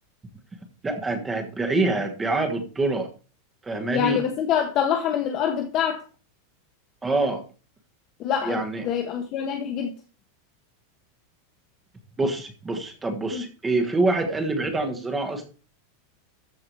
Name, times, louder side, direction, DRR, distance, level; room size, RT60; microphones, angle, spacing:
voice 1, 0.8-3.1 3.6-4.2 7.0-7.4 8.4-8.8 12.2-15.5, right 2 dB, 10° right, 1.4 m, -25 dB
voice 2, 3.9-6.0 8.2-8.6 8.8-9.9 13.3-13.4, left 8 dB, 30° left, 1.0 m, -25 dB
13.5 x 4.8 x 4.7 m
supercardioid pair, 165°, 0 cm